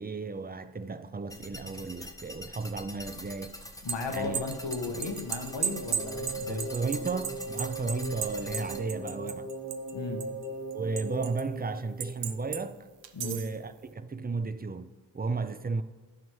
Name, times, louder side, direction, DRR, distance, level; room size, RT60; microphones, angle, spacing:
voice 1, 0.0-3.6 4.1-4.4 6.5-9.5 10.7-12.8 13.2-15.8, right 4 dB, 25° right, 0.4 m, -34 dB
sound 1, 1.3-8.8, left 1 dB, 10° left, 0.7 m, -44 dB
sound 2, 3.6-9.9 10.2-11.4 12.0-12.6 13.0-13.6, right 8 dB, 80° right, 0.6 m, -35 dB
voice 2, 3.8-6.7 9.9-10.2 13.1-13.4, left 3 dB, 85° left, 1.1 m, -35 dB
sound 3, 5.3-12.6, right 1 dB, 60° right, 2.3 m, -39 dB
12.5 x 5.4 x 3.1 m
wide cardioid pair, 50°, 43 cm